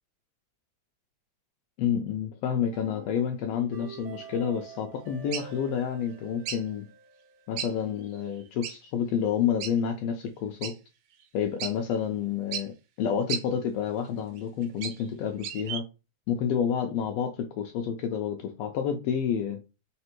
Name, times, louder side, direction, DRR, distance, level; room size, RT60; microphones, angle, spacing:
voice 1, 1.8-6.9 7.5-10.7 11.3-12.7 13.0-15.8 16.3-19.6, left 8 dB, 85° left, 1.4 m, -29 dB
sound 1, 2.7-7.8, right 4 dB, 60° right, 1.4 m, -47 dB
sound 2, 5.3-5.5 6.5-6.6 7.6-7.7 8.0-8.1 8.6-8.8 9.6-9.7 10.6-10.7 11.2-11.3 11.6-11.7 12.5-12.7 13.3-13.4 14.4-15.1 15.4-15.8, right 9 dB, 80° right, 2.0 m, -34 dB
4.3 x 3.2 x 3.0 m
omnidirectional pair, 3.5 m